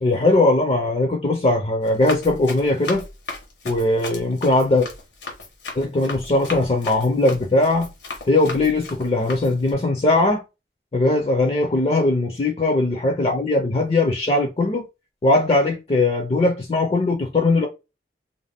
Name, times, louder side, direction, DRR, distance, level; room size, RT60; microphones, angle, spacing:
voice 1, 0.0-3.0 3.6-4.9 5.7-7.9 8.3-10.4 10.9-14.9 15.2-17.7, left 2 dB, 35° left, 0.4 m, -20 dB
Run, 1.8-9.7, left 3 dB, 85° left, 1.0 m, -36 dB
2.6 x 2.1 x 3.2 m
head